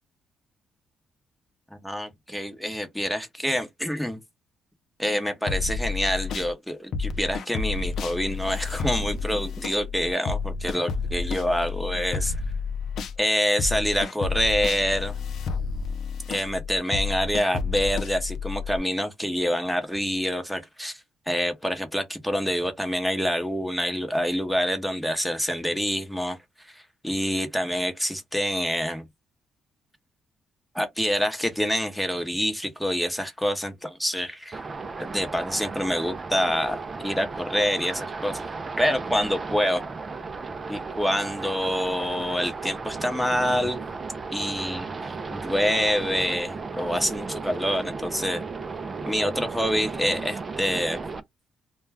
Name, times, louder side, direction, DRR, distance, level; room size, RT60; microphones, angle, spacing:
voice 1, 1.7-4.2 5.0-12.4 13.2-15.1 16.3-21.0 21.3-29.0 30.7-34.6 35.0-38.4 38.8-39.8 40.7-43.8 44.3-44.9 45.3-48.4 49.1-51.0, equal, 5° left, 0.8 m, -26 dB
sound 1, 5.5-6.5 6.9-13.2 13.6-18.8, left 4 dB, 70° left, 0.4 m, -30 dB
sound 2, 34.5-51.2, right 4 dB, 35° right, 0.4 m, -35 dB
2.2 x 2.1 x 3.4 m
cardioid pair, 90°, 0 cm